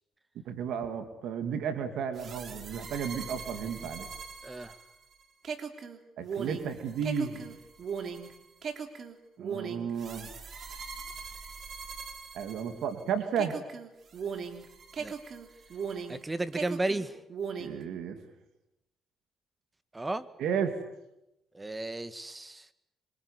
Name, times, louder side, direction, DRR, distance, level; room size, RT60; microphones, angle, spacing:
voice 1, 0.4-4.1 6.2-7.6 9.4-10.4 12.3-13.6 17.6-18.2 20.4-20.8, right 7 dB, 80° right, 8 dB, 2.8 m, -33 dB
sound 1, 2.1-13.0 13.4-16.2 16.5-17.8, right 6 dB, 55° right, 3.3 m, -39 dB
voice 2, 4.4-4.8 15.0-15.1 16.1-17.2 19.9-20.3 21.5-22.7, right 2 dB, 15° right, 13 dB, 1.8 m, -34 dB
25.5 x 24.0 x 8.5 m, 0.89 s
cardioid pair, 90°, 0 cm